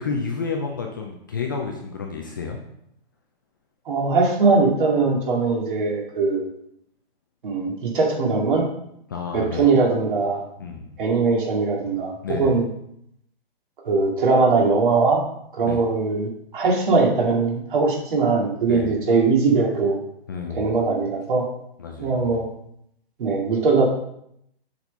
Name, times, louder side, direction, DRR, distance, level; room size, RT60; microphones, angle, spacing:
voice 1, 0.0-2.6 9.1-9.7 10.6-11.0 12.2-12.6 15.6-15.8 18.7-19.0 20.3-20.7 21.8-22.5, left 5 dB, 20° left, 1 dB, 0.4 m, -30 dB
voice 2, 3.9-6.5 7.4-8.6 9.3-10.4 11.0-12.1 12.4-12.6 13.8-15.2 15.5-20.0 20.5-21.4 22.0-22.5 23.2-23.9, right 4 dB, 55° right, -1 dB, 2.3 m, -20 dB
7.1 x 4.2 x 5.3 m, 0.74 s
hypercardioid pair, 155°, 31 cm